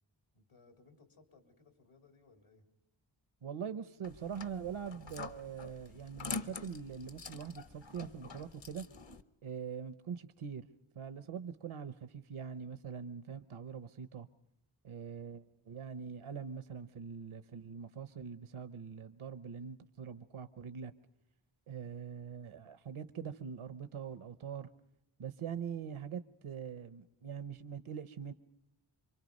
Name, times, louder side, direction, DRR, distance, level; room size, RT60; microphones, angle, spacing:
voice 1, 0.3-2.7, left 4 dB, 85° left, 3.4 m, -63 dB
voice 2, 3.4-8.8 9.4-10.7 10.9-14.3 14.8-20.9 21.7-24.7 25.2-28.3, right 7 dB, 80° right, 0.8 m, -43 dB
sound 1, 4.0-9.2, left 4 dB, 60° left, 1.1 m, -46 dB
27.0 x 24.5 x 5.3 m
wide cardioid pair, 60°, 49 cm